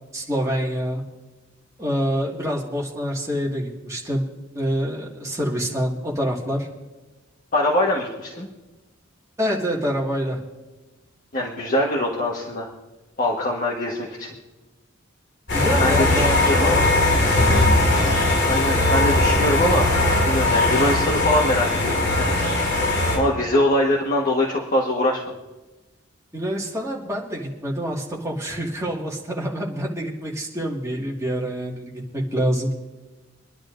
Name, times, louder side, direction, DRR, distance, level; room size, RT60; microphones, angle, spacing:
voice 1, 0.1-1.0 1.8-4.3 4.5-6.7 9.4-10.4 15.5-16.9 26.3-32.7, equal, 15° right, -3 dB, 1.9 m, -26 dB
voice 2, 7.5-8.5 11.3-12.7 13.2-14.3 15.8-16.8 18.4-19.9 20.2-22.4 23.1-25.2, left 1 dB, 45° left, -3 dB, 1.4 m, -23 dB
sound 1, 15.5-23.2, left 2 dB, 70° left, 5.3 m, -19 dB
25.5 x 10.5 x 2.6 m, 1.2 s
head